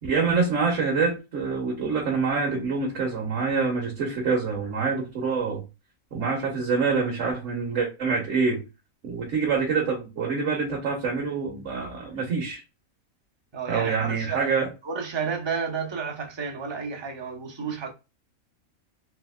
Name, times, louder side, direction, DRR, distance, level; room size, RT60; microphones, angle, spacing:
voice 1, 0.0-5.6 6.1-8.6 9.0-12.6 13.7-14.7, right 4 dB, 60° right, 1.2 m, -26 dB
voice 2, 13.5-14.5 14.8-17.9, right 5 dB, 35° right, 0.4 m, -31 dB
3.5 x 2.8 x 2.2 m
omnidirectional pair, 1.5 m